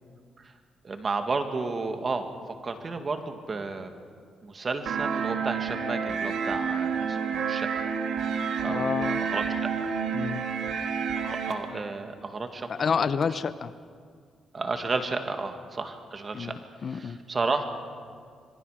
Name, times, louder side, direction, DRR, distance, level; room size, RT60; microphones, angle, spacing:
voice 1, 0.8-2.3 2.6-4.0 4.4-7.9 8.6-9.7 11.2-12.7 13.3-13.4 14.5-16.6 16.9-17.6, right 3 dB, 35° right, 6 dB, 2.1 m, -32 dB
sound 1, 4.9-11.5, right 6 dB, 75° right, 2.1 m, -29 dB
voice 2, 8.7-9.2 10.1-10.4 12.7-13.7 16.3-17.2, left 6 dB, 50° left, 14 dB, 0.7 m, -29 dB
26.0 x 22.5 x 5.1 m, 2.1 s
cardioid pair, 85°, 0 cm